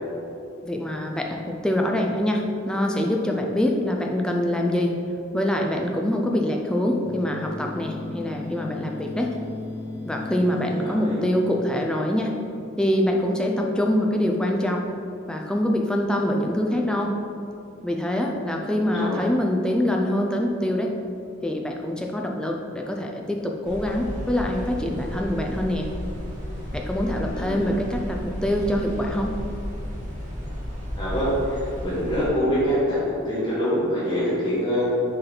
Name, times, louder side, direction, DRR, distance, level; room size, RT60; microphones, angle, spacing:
voice 1, 0.6-5.0 5.3-9.3 10.0-12.3 12.8-14.8 15.3-17.1 17.8-20.9 21.4-25.9 26.7-29.3, left 1 dB, 5° left, 1 dB, 0.4 m, -24 dB
sound 1, 7.0-13.6, left 2 dB, 15° right, 1.4 m, -37 dB
voice 2, 10.8-11.2 18.7-19.2 27.3-27.7 30.9-34.8, equal, 20° left, -11 dB, 1.5 m, -25 dB
sound 2, 23.6-32.3, equal, 35° right, 1.2 m, -33 dB
6.5 x 4.5 x 3.9 m, 2.7 s
head